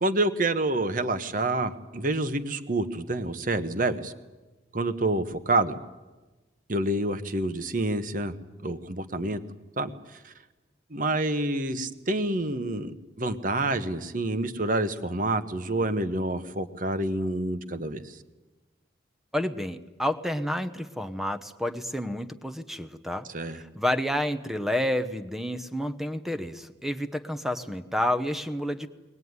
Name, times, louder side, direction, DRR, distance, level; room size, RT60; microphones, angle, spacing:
voice 1, 0.0-4.1 4.7-5.8 6.7-8.3 8.6-9.4 9.8-10.3 10.9-18.2 23.3-23.6, right 2 dB, 45° right, 10 dB, 1.2 m, -28 dB
voice 2, 19.3-28.9, left 1 dB, ahead, 9 dB, 0.8 m, -30 dB
22.0 x 20.0 x 9.6 m, 1.2 s
head